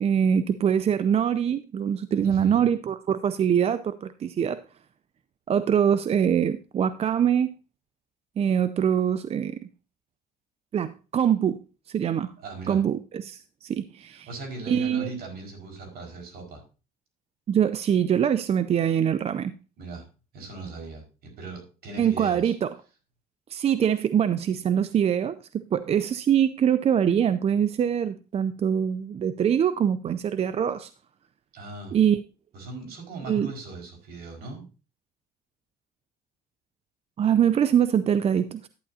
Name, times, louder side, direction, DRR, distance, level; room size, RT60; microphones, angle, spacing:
voice 1, 0.0-4.6 5.5-7.5 8.4-9.7 10.7-11.6 11.9-12.3 12.7-14.3 14.7-15.1 17.5-19.5 22.0-22.7 23.5-30.9 31.9-32.2 33.3-33.5 37.2-38.7, right 8 dB, 35° right, 0.5 m, -24 dB
voice 2, 2.2-2.6 12.4-12.8 14.1-16.6 19.8-20.1 20.3-22.5 31.5-32.0 32.5-34.7, right 2 dB, 65° right, 5.0 m, -39 dB
11.5 x 9.6 x 2.7 m
cardioid pair, 110°, 17 cm